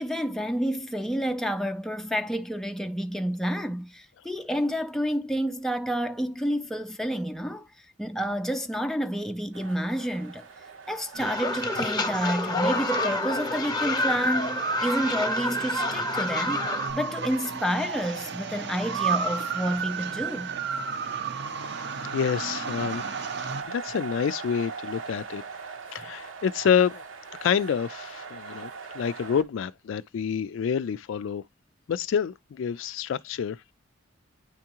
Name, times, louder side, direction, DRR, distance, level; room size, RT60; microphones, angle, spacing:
voice 1, 0.0-10.5 10.9-16.6 16.9-20.5, equal, ahead, 0.4 m, -29 dB
sound 1, 9.5-29.4, right 5 dB, 75° right, 1.1 m, -41 dB
sound 2, 11.1-23.6, right 6 dB, 55° right, 0.7 m, -34 dB
sound 3, 11.2-16.9, left 2 dB, 20° left, 0.9 m, -28 dB
voice 2, 22.1-23.2 23.7-25.4 25.9-27.0 27.4-31.4 31.9-33.7, left 7 dB, 70° left, 0.3 m, -28 dB
9.6 x 3.5 x 2.9 m
head